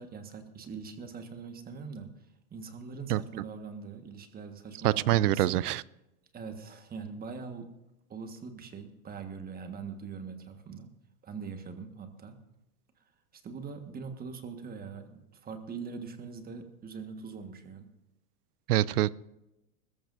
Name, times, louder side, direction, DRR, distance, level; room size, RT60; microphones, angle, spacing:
voice 1, 0.0-2.1 2.5-5.6 6.3-7.7 8.1-10.9 11.2-12.4 13.3-17.9, right 5 dB, 20° right, 6 dB, 1.5 m, -42 dB
voice 2, 4.8-5.8 18.7-19.1, right 14 dB, 90° right, 21 dB, 0.6 m, -25 dB
22.0 x 14.0 x 2.6 m, 0.94 s
supercardioid pair, 130°, 44 cm